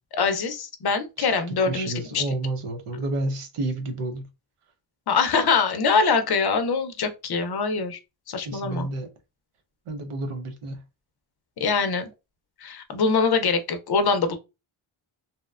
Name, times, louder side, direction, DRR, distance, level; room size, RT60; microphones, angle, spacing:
voice 1, 0.2-2.2 5.1-8.0 8.3-8.9 11.6-12.1 12.6-14.4, left 5 dB, 50° left, 0.5 m, -23 dB
voice 2, 1.7-4.3 8.4-9.1 9.9-10.8, right 2 dB, 85° right, 0.8 m, -30 dB
2.8 x 2.1 x 2.3 m
wide cardioid pair, 130°, 50 cm